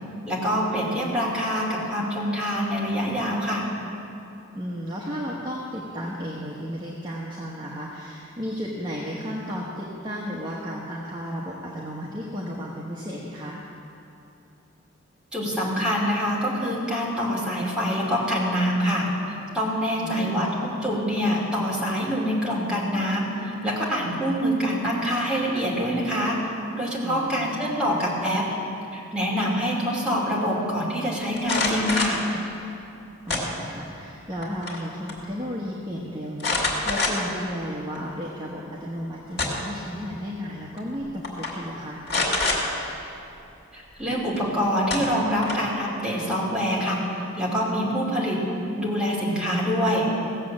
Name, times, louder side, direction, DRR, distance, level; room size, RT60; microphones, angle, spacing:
voice 1, 0.3-3.6 15.3-20.5 20.8-28.5 28.9-32.2 43.7-47.0 47.4-48.4 48.8-50.1, equal, 5° right, -6 dB, 2.8 m, -25 dB
voice 2, 4.5-13.6 20.0-20.5 27.0-27.6 33.3-42.0, equal, 20° right, -5 dB, 1.2 m, -34 dB
sound 1, 31.4-32.2 33.3-33.9 34.3-34.8 35.1-35.2 36.4-37.4 37.9-38.0 39.1-39.8 40.8-40.9 41.2-41.5 42.1-42.6 44.4-44.5 44.9-45.7, left 3 dB, 50° left, 2.4 m, -26 dB
17.0 x 7.6 x 7.4 m, 2.8 s
head